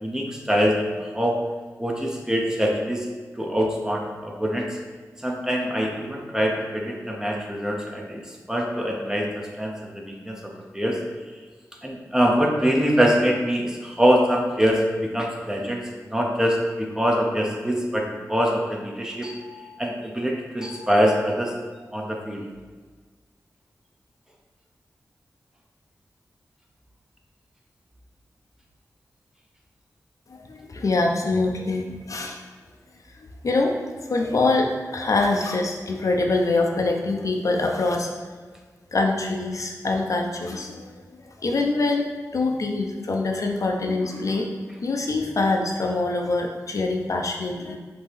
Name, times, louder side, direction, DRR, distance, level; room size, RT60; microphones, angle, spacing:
voice 1, 0.0-1.4 1.8-3.1 3.3-4.8 5.2-11.0 11.8-21.5 21.9-22.4, equal, 10° right, 0 dB, 0.7 m, -24 dB
voice 2, 30.3-32.4 33.2-33.8 34.1-38.1 38.9-42.0 42.3-44.5 44.8-47.8, left 3 dB, 60° left, 2 dB, 0.5 m, -24 dB
5.3 x 2.8 x 3.3 m, 1.4 s
wide cardioid pair, 70°, 6 cm